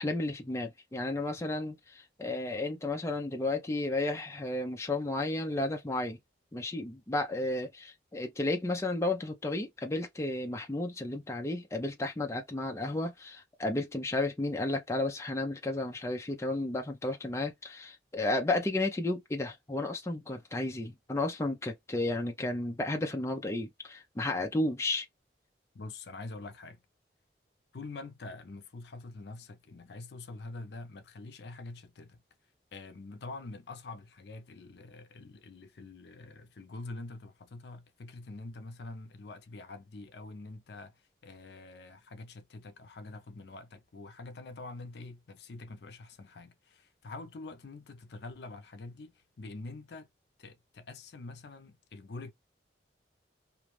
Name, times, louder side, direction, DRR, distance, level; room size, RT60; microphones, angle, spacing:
voice 1, 0.0-6.2 6.5-25.1, left 2 dB, 15° left, 0.4 m, -33 dB
voice 2, 25.7-26.8 27.7-32.2 32.7-50.1 50.4-52.3, left 3 dB, 65° left, 0.5 m, -45 dB
2.5 x 2.3 x 3.0 m
head